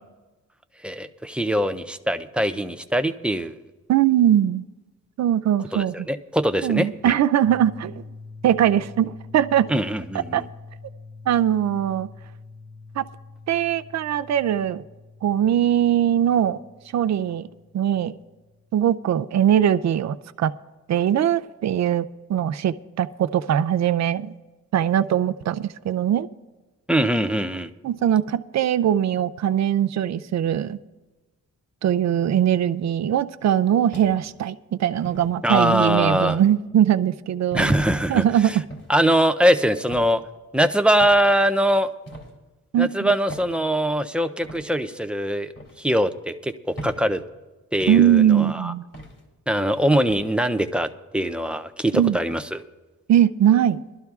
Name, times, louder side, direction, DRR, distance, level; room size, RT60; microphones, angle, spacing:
voice 1, 0.8-3.6 5.7-7.1 9.7-10.5 26.9-27.7 35.4-36.4 37.5-38.6 38.9-40.2 40.5-41.9 42.8-47.2 47.7-48.7 49.5-50.9 51.1-52.6, equal, 5° right, 8 dB, 0.4 m, -22 dB
voice 2, 3.9-4.6 5.2-5.9 6.6-8.0 8.4-9.7 10.3-10.4 11.3-12.1 13.0-13.1 13.5-14.8 15.2-16.6 16.9-17.5 17.7-18.1 18.7-20.5 20.9-24.3 24.7-26.3 27.8-30.8 31.8-37.7 38.1-38.6 42.7-43.1 47.9-48.8 51.9-52.2 53.1-53.8, right 10 dB, 60° right, 11 dB, 0.5 m, -21 dB
sound 1, 7.4-19.3, left 3 dB, 35° left, 1.9 m, -45 dB
sound 2, 33.9-34.4 35.0-35.3 36.3-36.5 37.5-37.8 38.7-38.9 39.9-40.2 41.0-41.3 42.1-42.3 43.3-43.5 44.4-44.6 45.6-45.8 46.8-47.0 47.8-48.0 48.9-49.2 50.1-50.3, right 1 dB, 50° left, 2.9 m, -38 dB
22.0 x 12.5 x 2.4 m, 1.2 s
wide cardioid pair, 130°, 32 cm